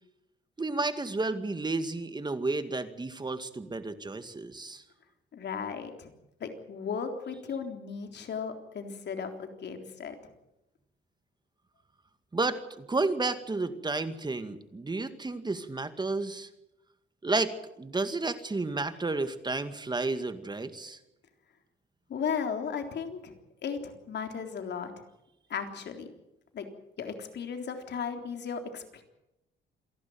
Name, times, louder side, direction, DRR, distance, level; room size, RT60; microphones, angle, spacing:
voice 1, 0.6-4.8 12.3-16.5 17.2-21.0, right 3 dB, 20° right, 10 dB, 2.0 m, -31 dB
voice 2, 5.3-6.1 6.4-10.2 22.1-23.4 23.6-24.9 25.5-26.1 26.5-26.7 27.0-29.0, left 6 dB, 60° left, 5 dB, 3.7 m, -35 dB
28.0 x 11.5 x 9.3 m, 0.90 s
cardioid pair, 90°, 20 cm